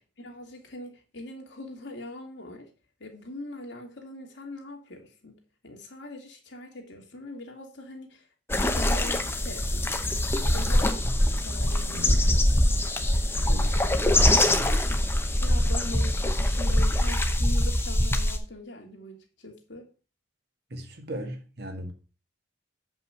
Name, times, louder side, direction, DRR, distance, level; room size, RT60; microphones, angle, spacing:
voice 1, 0.2-2.7 3.0-8.3 8.7-10.2 10.5-12.4 13.4-14.0 15.4-19.9, left 2 dB, 65° left, 2.3 m, -42 dB
sound 1, 8.5-18.4, left 1 dB, 10° left, 0.8 m, -23 dB
voice 2, 11.9-12.2 13.4-13.7 14.6-14.8 20.7-21.9, right 1 dB, 55° right, 1.7 m, -37 dB
8.2 x 5.5 x 5.7 m
head